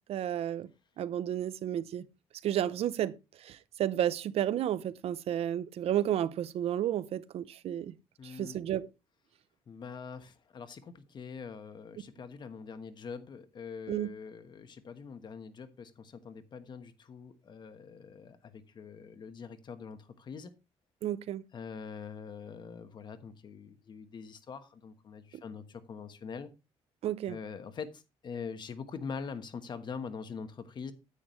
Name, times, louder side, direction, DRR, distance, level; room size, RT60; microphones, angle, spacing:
voice 1, 0.1-0.7 1.0-2.1 2.4-3.2 3.4-7.9 8.2-8.9 13.9-14.1 21.0-21.4 25.3-25.4 27.0-27.4, right 11 dB, 65° right, 0.6 m, -32 dB
voice 2, 8.2-8.6 9.7-20.5 21.5-26.5 27.3-30.9, left 5 dB, 40° left, 1.2 m, -43 dB
9.7 x 8.8 x 3.1 m
cardioid pair, 120°, 11 cm